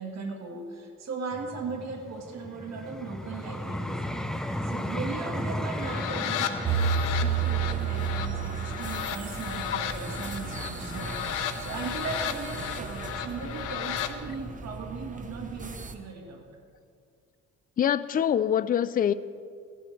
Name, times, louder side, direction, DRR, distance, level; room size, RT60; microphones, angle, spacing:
voice 1, 0.0-4.1 4.6-11.2 11.6-16.5, right 4 dB, 60° right, 2 dB, 1.6 m, -38 dB
Vehicle, 1.3-10.4 11.0-11.2, equal, ahead, 0.7 m, -36 dB
sound 1, 5.6-14.1, left 10 dB, 85° left, 0.8 m, -34 dB
sound 2, 6.6-15.9, right 6 dB, 25° right, 0.8 m, -33 dB
voice 2, 17.8-19.1, left 9 dB, 30° left, 15 dB, 0.4 m, -24 dB
16.0 x 11.0 x 3.2 m, 2.3 s
cardioid pair, 90°, 30 cm